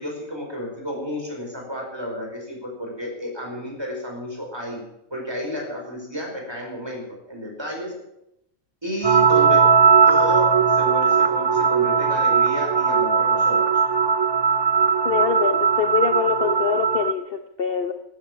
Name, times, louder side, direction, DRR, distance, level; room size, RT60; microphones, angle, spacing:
voice 1, 0.0-4.8 5.1-7.9 8.8-9.7 10.1-13.6, equal, 20° right, 0 dB, 5.2 m, -32 dB
sound 1, 9.0-17.1, right 6 dB, 45° right, 0.3 m, -18 dB
voice 2, 15.0-17.9, left 7 dB, 50° left, 7 dB, 1.0 m, -24 dB
15.0 x 13.5 x 6.2 m, 0.83 s
omnidirectional pair, 1.4 m